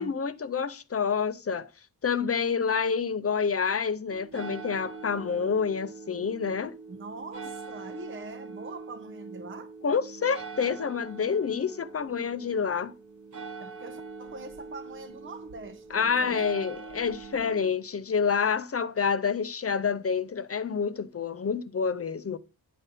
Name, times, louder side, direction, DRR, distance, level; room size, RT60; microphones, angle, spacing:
voice 1, 0.0-1.7 2.0-6.7 9.8-12.9 15.9-22.4, left 6 dB, 35° left, 0.6 m, -28 dB
sound 1, 4.1-17.7, right 4 dB, 50° right, 1.2 m, -43 dB
voice 2, 6.9-9.7 13.6-16.8, right 3 dB, 30° right, 0.8 m, -43 dB
10.5 x 4.1 x 5.2 m
wide cardioid pair, 105°, 39 cm